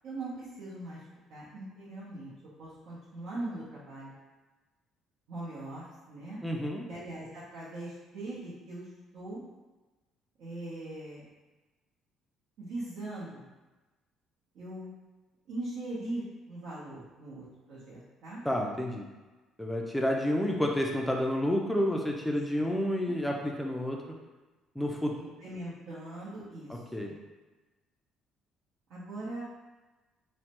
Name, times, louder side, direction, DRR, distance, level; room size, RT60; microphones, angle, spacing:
voice 1, 0.0-1.0 1.3-2.3 2.6-4.1 5.3-6.4 6.9-8.9 9.1-9.4 10.4-11.2 12.6-13.5 14.5-14.9 15.5-18.4 22.3-22.6 23.0-23.1 24.8-27.2 28.9-29.4, right 2 dB, 70° right, -9 dB, 0.8 m, -41 dB
voice 2, 6.4-6.9 18.5-19.1 19.6-24.1 24.8-25.2 26.7-27.1, equal, 5° left, 0 dB, 0.3 m, -30 dB
3.1 x 2.1 x 2.9 m, 1.2 s
cardioid pair, 165°, 0 cm